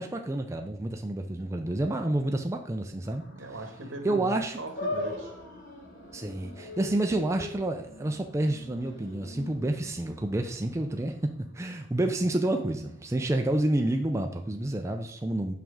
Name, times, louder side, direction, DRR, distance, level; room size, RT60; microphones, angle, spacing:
voice 1, 0.0-3.2 4.0-4.6 6.1-15.5, right 1 dB, 15° right, 4 dB, 0.4 m, -29 dB
sound 1, 3.0-13.5, right 1 dB, 70° left, 1.0 m, -56 dB
voice 2, 3.3-5.3, right 1 dB, 80° right, 4 dB, 1.3 m, -39 dB
sound 2, 4.7-11.2, left 2 dB, 45° left, 1.5 m, -40 dB
5.8 x 5.3 x 3.6 m, 0.73 s
head